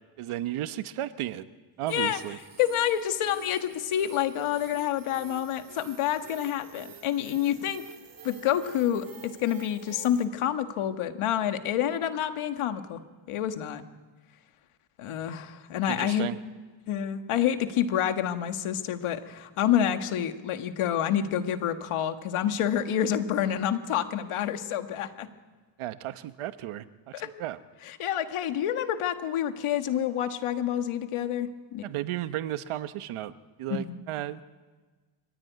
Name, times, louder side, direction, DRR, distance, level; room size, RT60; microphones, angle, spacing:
voice 1, 0.2-1.5 1.8-2.4 15.9-16.4 25.8-27.6 31.8-33.3 33.6-34.4, right 13 dB, 75° right, 12 dB, 1.1 m, -34 dB
voice 2, 1.9-2.2 2.6-7.8 8.2-13.0 13.3-13.8 15.0-16.3 16.9-25.3 27.1-27.3 27.8-31.8 33.7-34.0, left 10 dB, 80° left, 8 dB, 1.7 m, -28 dB
sound 1, 1.9-10.3, right 6 dB, 40° right, 2.9 m, -49 dB
24.5 x 15.5 x 9.3 m, 1.3 s
cardioid pair, 115°, 50 cm